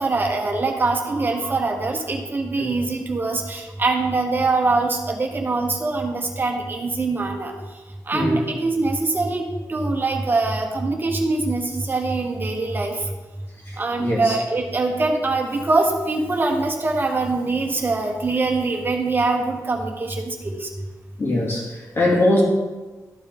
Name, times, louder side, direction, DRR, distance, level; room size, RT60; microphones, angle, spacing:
voice 1, 0.0-7.5 8.1-9.4 9.7-13.0 13.8-20.7, right 3 dB, 30° right, 3 dB, 1.0 m, -23 dB
voice 2, 8.1-8.4 14.0-14.3 21.2-22.4, left 1 dB, 40° left, -3 dB, 2.2 m, -21 dB
13.0 x 4.7 x 3.5 m, 1.2 s
wide cardioid pair, 145°, 6 cm